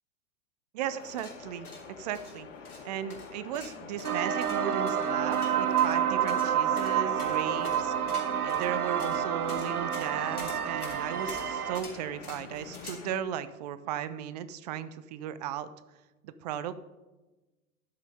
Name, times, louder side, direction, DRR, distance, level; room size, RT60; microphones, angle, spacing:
voice 1, 0.7-1.7 2.0-2.5 2.8-7.9 8.4-15.7 16.2-16.7, right 10 dB, 30° right, 14 dB, 0.4 m, -36 dB
sound 1, 0.8-13.2, left 5 dB, 55° left, 1.5 m, -46 dB
sound 2, 1.0-12.9, left 3 dB, 80° left, 2.6 m, -46 dB
sound 3, 4.0-11.8, right 8 dB, 85° right, 0.7 m, -29 dB
11.5 x 5.7 x 4.8 m, 1.1 s
figure-of-eight pair, 100°, 44 cm